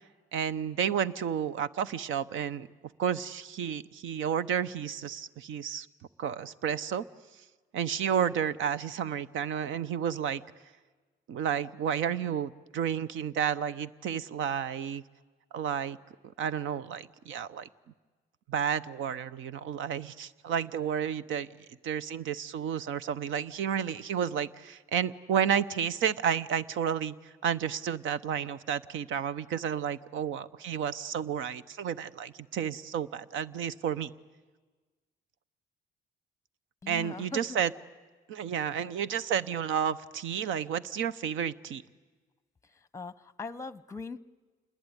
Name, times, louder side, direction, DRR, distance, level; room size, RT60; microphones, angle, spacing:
voice 1, 0.3-2.7 3.0-5.9 6.2-7.0 7.7-10.4 11.3-15.0 15.5-16.0 16.4-17.7 18.5-21.5 21.8-34.1 36.9-37.7 38.3-41.8, right 8 dB, 80° right, 16 dB, 0.8 m, -31 dB
voice 2, 36.8-37.6 42.9-44.2, left 4 dB, 15° left, 18 dB, 0.8 m, -40 dB
27.5 x 20.5 x 9.8 m, 1.3 s
cardioid pair, 90°, 20 cm